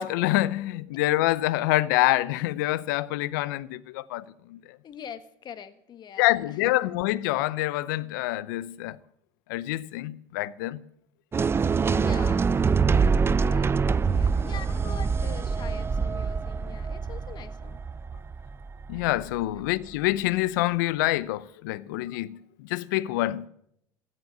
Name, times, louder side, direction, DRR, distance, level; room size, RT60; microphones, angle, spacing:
voice 1, 0.0-4.8 6.2-9.0 9.5-10.8 18.9-23.5, left 17 dB, 80° left, 0.7 m, -26 dB
voice 2, 4.8-6.9 11.8-12.6 12.9-13.2 13.5-17.8 19.5-19.6, left 8 dB, 45° left, 1.4 m, -43 dB
sound 1, 11.3-19.4, right 5 dB, 25° right, 0.5 m, -25 dB
16.0 x 7.7 x 9.4 m
hypercardioid pair, 80°, 10 cm